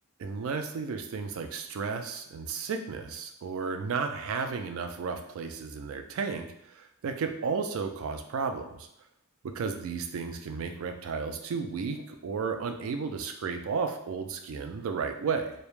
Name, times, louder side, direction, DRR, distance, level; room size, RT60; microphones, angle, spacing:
voice 1, 0.2-8.9 9.4-15.5, right 5 dB, 65° right, 6 dB, 0.3 m, -33 dB
2.1 x 2.0 x 3.0 m, 0.79 s
head